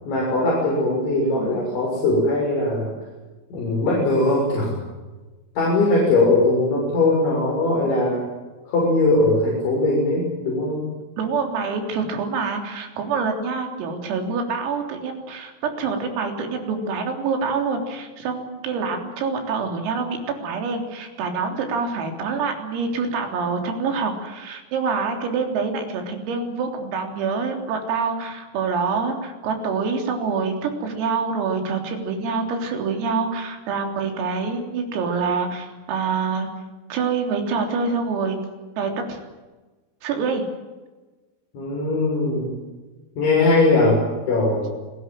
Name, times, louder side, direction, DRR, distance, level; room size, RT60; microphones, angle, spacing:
voice 1, 0.1-2.9 3.5-4.8 5.6-8.2 8.7-10.9 41.5-42.6 43.2-44.7, left 2 dB, 60° left, -4 dB, 9.0 m, -20 dB
voice 2, 1.2-1.7 11.2-15.5 15.8-36.5 36.9-38.4 38.8-39.2 40.0-40.4, right 5 dB, 85° right, 4 dB, 6.2 m, -26 dB
29.5 x 20.0 x 7.7 m, 1.2 s
omnidirectional pair, 5.9 m